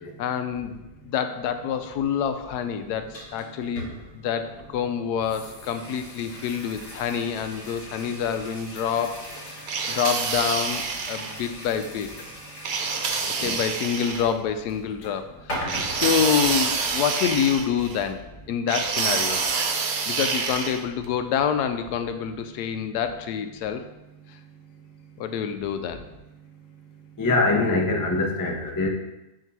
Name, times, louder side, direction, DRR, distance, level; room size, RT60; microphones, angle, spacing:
voice 1, 0.2-9.2 9.6-12.1 13.4-15.6 15.9-19.4 20.1-23.9 24.3-24.4 25.2-26.0, left 8 dB, 85° left, 8 dB, 1.2 m, -27 dB
sound 1, 2.9-15.1 15.5-17.0, equal, 55° left, 3.1 m, -40 dB
sound 2, 9.7-11.4 12.7-14.3 15.7-18.0 18.7-20.8, right 5 dB, 65° right, 1.2 m, -27 dB
voice 2, 27.2-28.9, left 2 dB, 30° left, 1 dB, 0.3 m, -23 dB
7.4 x 2.9 x 6.0 m, 0.97 s
omnidirectional pair, 1.7 m